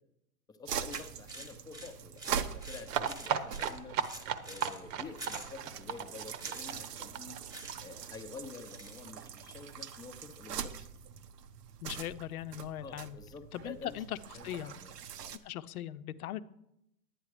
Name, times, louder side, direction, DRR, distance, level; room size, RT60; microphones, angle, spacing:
voice 1, 0.5-4.0 4.4-7.4 7.8-10.9 11.9-12.0 12.8-14.0 14.3-15.3, left 4 dB, 10° left, 6 dB, 0.6 m, -49 dB
sound 1, 0.7-15.4, right 8 dB, 90° right, 1.0 m, -43 dB
sound 2, 0.9-4.8 5.2-5.5 6.3-6.7 7.5-7.8 8.1-8.2 8.5-9.0, right 1 dB, 10° right, 1.1 m, -47 dB
sound 3, 2.9-8.5 8.7-8.8 9.1-9.2 9.4-9.5, right 8 dB, 55° right, 1.0 m, -36 dB
voice 2, 11.8-13.2 13.5-14.2 14.4-14.7 15.4-16.4, left 12 dB, 70° left, 14 dB, 0.7 m, -39 dB
11.0 x 9.5 x 4.9 m, 0.82 s
hypercardioid pair, 135°, 46 cm